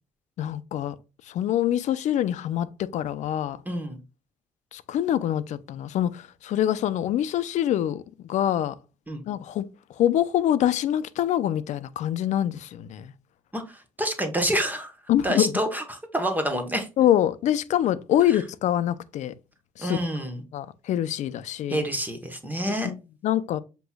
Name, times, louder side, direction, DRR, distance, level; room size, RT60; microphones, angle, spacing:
voice 1, 0.4-1.0 1.3-3.6 4.7-8.8 9.3-9.7 10.0-13.1 15.1-15.6 17.0-19.3 19.8-20.0 20.5-21.8 22.7-23.6, left 11 dB, 70° left, 0.5 m, -25 dB
voice 2, 3.7-4.0 9.1-9.2 13.5-14.9 15.2-16.9 19.8-20.4 21.7-22.9, right 1 dB, 15° right, 1.2 m, -28 dB
7.7 x 3.0 x 2.3 m
cardioid pair, 80°, 12 cm